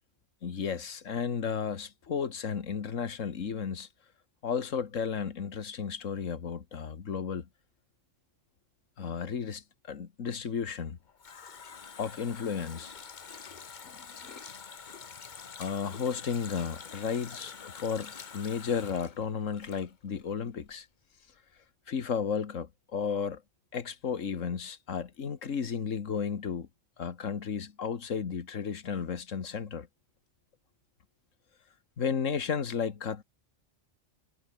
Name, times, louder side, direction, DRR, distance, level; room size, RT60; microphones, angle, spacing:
voice 1, 0.4-3.9 4.4-7.5 9.0-11.0 12.0-12.9 13.8-14.4 15.6-20.9 21.9-23.4 23.7-26.7 27.0-29.9 32.0-33.2, left 6 dB, 80° left, 1.9 m, -33 dB
Water tap faucet, 10.7-20.3 20.6-20.7, left 6 dB, 40° left, 1.0 m, -47 dB
omnidirectional pair, 1.3 m